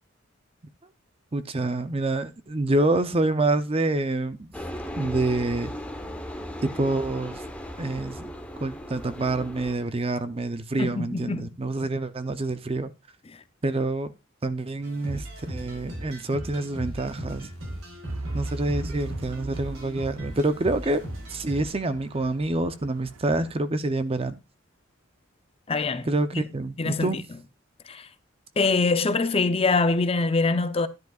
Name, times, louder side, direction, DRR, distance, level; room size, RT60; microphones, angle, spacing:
voice 1, 1.3-4.5 5.0-5.7 6.6-7.4 7.8-8.3 8.6-12.9 13.6-14.1 14.4-17.5 18.3-21.0 21.3-24.4 26.1-27.2, right 2 dB, 30° right, 0.6 m, -27 dB
sound 1, 4.5-9.8, equal, 5° left, 1.0 m, -37 dB
voice 2, 10.8-11.5 25.7-26.1 26.3-26.4 26.8-27.2 27.9-28.1 28.6-30.9, left 3 dB, 30° left, 0.6 m, -24 dB
sound 2, 14.8-21.7, right 1 dB, 70° right, 4.1 m, -37 dB
Truck / Idling, 18.1-23.6, right 2 dB, 90° right, 0.7 m, -40 dB
12.0 x 10.5 x 2.4 m
head